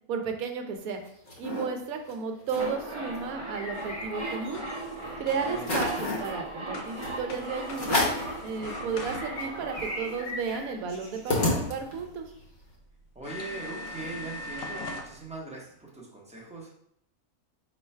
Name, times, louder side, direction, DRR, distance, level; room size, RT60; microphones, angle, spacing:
voice 1, 0.1-1.0 1.4-4.6 5.2-8.1 8.4-12.3, right 6 dB, 75° right, 5 dB, 1.1 m, -33 dB
sound 1, 0.8-1.6 2.1-2.2 2.4-2.7 3.1-4.7 5.1-5.2 5.6-6.3 7.0-7.2 7.7-8.3 8.8-8.9 9.1-12.1, left 2 dB, 40° left, 0.9 m, -31 dB
sound 2, 2.6-11.4 11.6-11.7, right 2 dB, 45° right, 0.4 m, -39 dB
sound 3, 3.7-9.6 11.8-11.9 12.5-12.6 13.2-15.1, left 2 dB, 70° left, 1.0 m, -41 dB
voice 2, 5.2-5.7 13.1-16.7, right 3 dB, 5° right, -4 dB, 0.8 m, -41 dB
4.4 x 2.3 x 4.3 m, 0.72 s
omnidirectional pair, 1.5 m